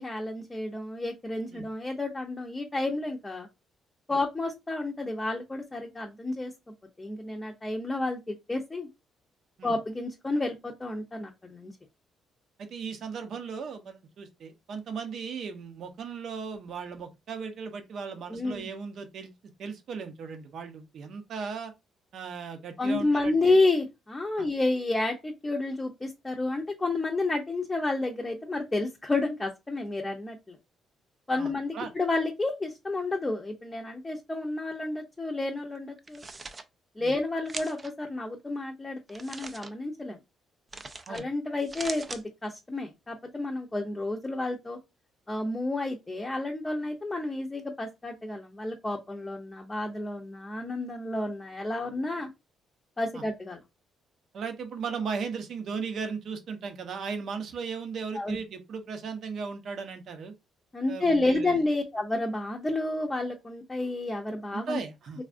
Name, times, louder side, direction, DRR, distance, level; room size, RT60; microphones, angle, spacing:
voice 1, 0.0-3.5 4.1-6.5 7.0-8.9 9.6-11.7 18.3-18.7 22.8-30.6 31.3-36.2 37.0-40.2 41.1-44.8 45.3-52.3 53.0-53.6 58.1-58.4 60.7-64.8, left 2 dB, 20° left, 0.6 m, -30 dB
voice 2, 12.6-19.3 19.6-21.7 22.1-23.6 24.4-24.5 31.4-31.9 37.0-37.1 41.1-41.2 53.1-53.2 54.3-60.3 60.9-61.6 64.5-65.2, right 5 dB, 65° right, 0.7 m, -37 dB
sound 1, 36.0-36.6 37.5-37.9 39.1-39.7 40.7-41.2 41.6-42.2, right 3 dB, 30° right, 0.4 m, -40 dB
3.4 x 2.3 x 2.5 m
cardioid pair, 90°, 0 cm